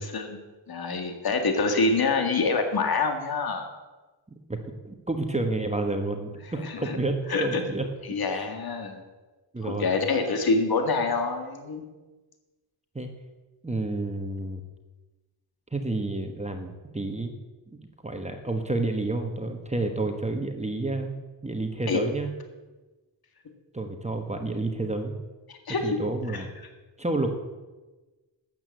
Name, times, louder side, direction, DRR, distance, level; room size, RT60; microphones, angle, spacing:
voice 1, 0.0-3.7 6.6-7.0 7.3-7.6 8.0-9.0 9.6-11.8 21.9-22.0 25.5-26.0 26.3-26.4, left 3 dB, 50° left, 5 dB, 1.9 m, -26 dB
voice 2, 4.8-7.8 8.3-8.5 9.5-9.9 12.9-13.1 13.6-14.6 15.7-17.3 18.0-21.1 21.4-22.3 23.7-25.1 25.8-26.5 27.0-27.4, right 2 dB, 15° right, 4 dB, 1.2 m, -30 dB
12.5 x 8.8 x 7.7 m, 1.2 s
wide cardioid pair, 120°, 46 cm